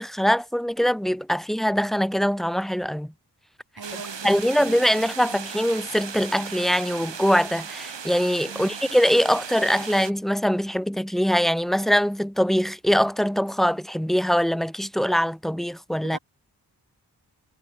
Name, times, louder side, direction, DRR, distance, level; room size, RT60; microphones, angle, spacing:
voice 1, 0.0-3.1 4.2-16.2, equal, ahead, 0.8 m, -23 dB
voice 2, 3.8-5.5 8.4-8.9 16.1-16.2, right 4 dB, 60° right, 4.1 m, -42 dB
sound 1, 3.8-10.1, right 6 dB, 85° right, 5.5 m, -37 dB
cardioid pair, 40°, 42 cm